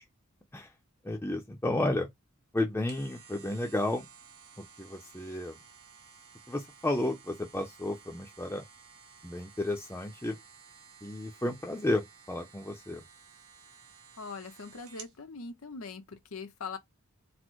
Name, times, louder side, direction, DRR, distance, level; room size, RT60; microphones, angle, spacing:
voice 1, 1.0-2.1 2.5-4.1 4.6-5.6 6.5-8.6 9.2-10.4 11.0-13.0, left 1 dB, 10° left, 0.5 m, -32 dB
sound 1, 2.6-15.2 15.6-15.7, right 6 dB, 85° right, 1.5 m, -55 dB
voice 2, 14.2-16.8, left 4 dB, 90° left, 0.8 m, -42 dB
4.1 x 2.1 x 4.5 m
head